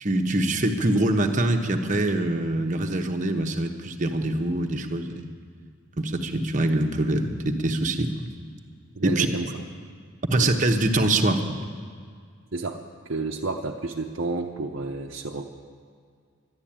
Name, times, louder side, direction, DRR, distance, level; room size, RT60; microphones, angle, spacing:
voice 1, 0.0-5.3 6.0-8.2 9.0-9.3 10.3-11.6, right 1 dB, 35° right, 4 dB, 1.0 m, -24 dB
voice 2, 9.0-9.6 10.3-10.5 12.5-15.5, right 3 dB, 60° right, -1 dB, 0.8 m, -31 dB
13.0 x 11.0 x 8.8 m, 2.1 s
head